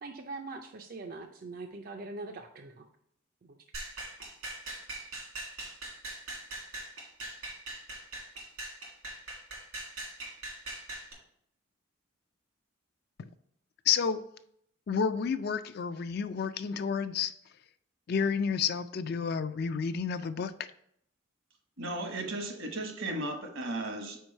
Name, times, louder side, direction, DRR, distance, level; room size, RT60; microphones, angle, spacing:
voice 1, 0.0-2.8 3.4-3.6, right 3 dB, 45° right, 4 dB, 0.4 m, -42 dB
sound 1, 3.7-11.1, right 2 dB, 90° right, 2.5 m, -41 dB
voice 2, 13.9-14.2 14.9-17.3 18.1-20.5, left 6 dB, 50° left, 11 dB, 0.3 m, -30 dB
voice 3, 21.8-24.2, right 2 dB, 75° right, 4 dB, 1.1 m, -35 dB
4.6 x 4.5 x 5.3 m, 0.70 s
head